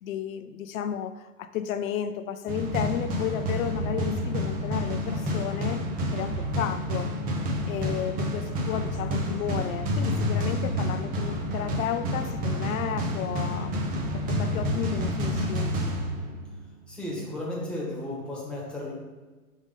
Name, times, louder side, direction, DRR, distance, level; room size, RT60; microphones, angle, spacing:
voice 1, 0.0-5.8 6.1-7.1 7.7-13.9 14.3-15.7, left 9 dB, 65° left, 10 dB, 0.6 m, -33 dB
sound 1, 2.5-16.7, equal, 20° right, 0.7 m, -29 dB
voice 2, 16.9-18.9, left 1 dB, ahead, -5 dB, 1.5 m, -34 dB
5.4 x 3.5 x 5.2 m, 1.3 s
hypercardioid pair, 130°, 46 cm